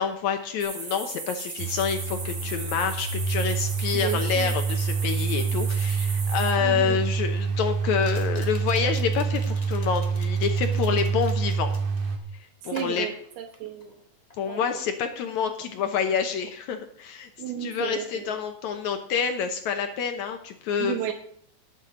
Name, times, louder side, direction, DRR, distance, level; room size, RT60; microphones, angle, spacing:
voice 1, 0.0-11.7 12.6-13.1 14.4-17.3 17.6-21.1, left 7 dB, 75° left, 6 dB, 1.8 m, -28 dB
sound 1, 0.6-6.5, right 3 dB, 35° right, 2.6 m, -37 dB
sound 2, 1.6-12.2, right 5 dB, 60° right, 3.1 m, -27 dB
voice 2, 3.9-4.5 6.6-7.0 12.7-14.0 14.5-14.7 17.4-18.4 20.8-21.1, right 9 dB, 90° right, 3 dB, 3.3 m, -33 dB
sound 3, 6.2-6.3 7.9-12.1 12.7-14.0 14.3-14.6, left 2 dB, 60° left, 0.4 m, -47 dB
19.0 x 8.2 x 3.8 m, 0.64 s
omnidirectional pair, 4.3 m